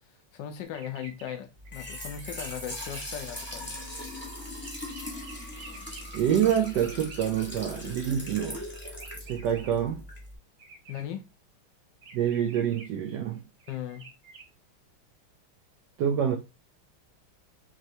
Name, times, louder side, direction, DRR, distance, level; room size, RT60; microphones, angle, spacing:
voice 1, 0.3-3.8 10.9-11.2 13.7-14.0, left 10 dB, 75° left, 1.0 m, -38 dB
sound 1, 0.6-1.4 1.6-3.0 3.4-7.3 8.7-9.7 10.6-11.0 12.0-12.9 13.6-14.4, right 4 dB, 60° right, 1.3 m, -49 dB
Trickle dribble / Fill (with liquid), 1.6-10.4, left 1 dB, 10° left, 0.7 m, -40 dB
voice 2, 6.1-8.6 9.2-10.0 12.1-13.4 16.0-16.4, right 9 dB, 85° right, 0.9 m, -26 dB
4.5 x 3.1 x 2.7 m
omnidirectional pair, 2.4 m